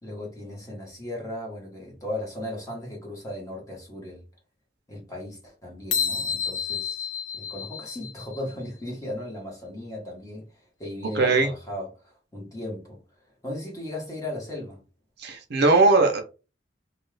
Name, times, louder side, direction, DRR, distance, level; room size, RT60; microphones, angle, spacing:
voice 1, 0.0-4.2 4.9-7.1 7.3-13.0 13.4-14.8, left 1 dB, 20° left, 1.2 m, -36 dB
sound 1, 5.9-8.5, left 7 dB, 80° left, 0.5 m, -30 dB
voice 2, 11.1-11.5 15.2-16.2, right 3 dB, 60° right, 0.6 m, -19 dB
2.6 x 2.4 x 3.2 m
head